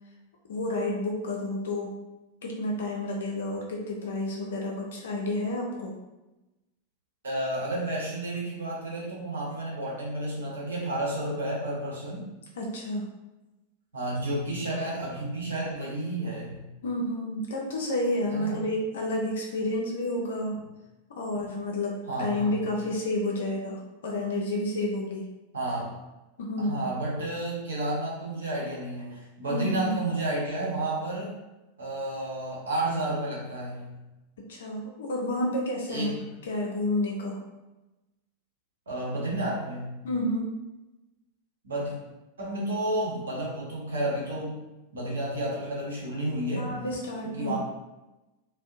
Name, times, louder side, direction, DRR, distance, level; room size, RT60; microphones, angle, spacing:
voice 1, 0.5-1.9 2.4-5.9 12.6-13.1 16.8-20.5 21.1-25.3 26.4-26.9 29.5-30.0 34.5-36.1 36.5-37.4 40.0-40.5 46.6-47.6, left 1 dB, 60° left, -1 dB, 0.4 m, -30 dB
voice 2, 7.2-12.3 13.9-16.7 18.3-18.6 21.4-21.5 22.1-22.6 25.5-25.9 26.6-31.4 31.8-34.0 35.9-36.1 38.9-40.0 41.6-41.9 42.4-44.6 44.9-46.7 47.2-47.6, right 1 dB, 70° right, -5 dB, 0.8 m, -31 dB
2.6 x 2.0 x 2.5 m, 1.0 s
figure-of-eight pair, 90°, 0 cm